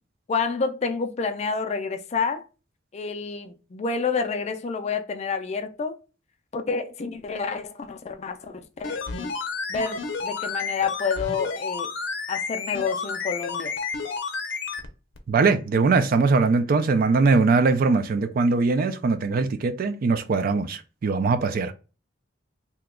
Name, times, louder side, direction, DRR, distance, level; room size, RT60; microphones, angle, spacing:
voice 1, 0.3-2.4 2.9-6.0 6.5-9.3 9.7-11.9 12.3-13.8, left 5 dB, 35° left, 0.4 m, -29 dB
sound 1, 8.8-14.9 15.2-15.3, left 5 dB, 85° left, 0.6 m, -31 dB
voice 2, 15.3-21.7, right 4 dB, 50° right, 0.3 m, -21 dB
2.9 x 2.2 x 3.5 m
head